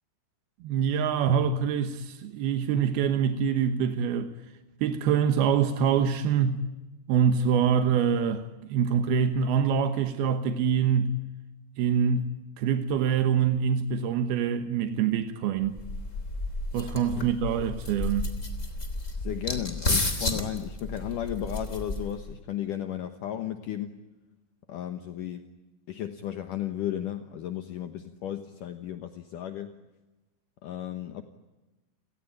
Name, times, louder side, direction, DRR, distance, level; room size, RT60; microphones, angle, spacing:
voice 1, 0.6-4.3 4.8-6.7 7.1-11.2 11.8-15.8 16.7-18.3, right 7 dB, 85° right, 3.2 m, -25 dB
sound 1, 15.6-22.3, left 2 dB, 20° left, 3.2 m, -32 dB
voice 2, 19.2-24.0 24.7-25.5 25.9-29.7 30.6-31.2, left 11 dB, 65° left, 2.6 m, -34 dB
30.0 x 19.0 x 10.0 m
omnidirectional pair, 4.3 m